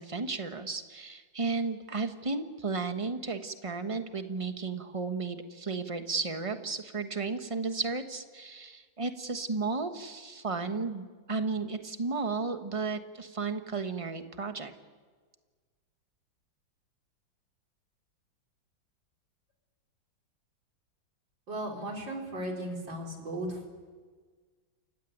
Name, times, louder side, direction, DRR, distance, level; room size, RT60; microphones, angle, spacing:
voice 1, 0.0-14.7, right 4 dB, 20° right, 7 dB, 1.1 m, -34 dB
voice 2, 21.5-23.7, right 1 dB, 70° right, 1 dB, 4.9 m, -36 dB
28.5 x 16.0 x 9.4 m, 1.5 s
omnidirectional pair, 2.1 m